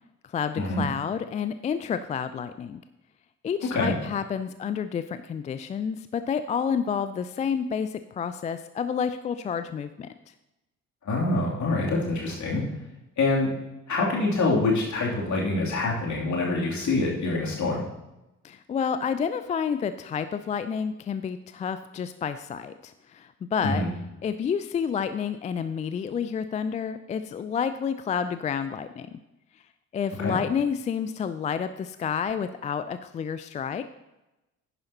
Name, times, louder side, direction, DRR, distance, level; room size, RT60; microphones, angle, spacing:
voice 1, 0.3-2.8 3.4-10.1 18.4-23.8 24.2-29.2 29.9-33.8, left 7 dB, 20° left, 11 dB, 0.3 m, -29 dB
voice 2, 11.0-12.6 13.2-13.5 13.9-17.8 23.6-23.9 30.2-30.4, left 2 dB, 40° left, -3 dB, 2.9 m, -25 dB
10.5 x 10.5 x 2.9 m, 0.96 s
figure-of-eight pair, 45°, 42 cm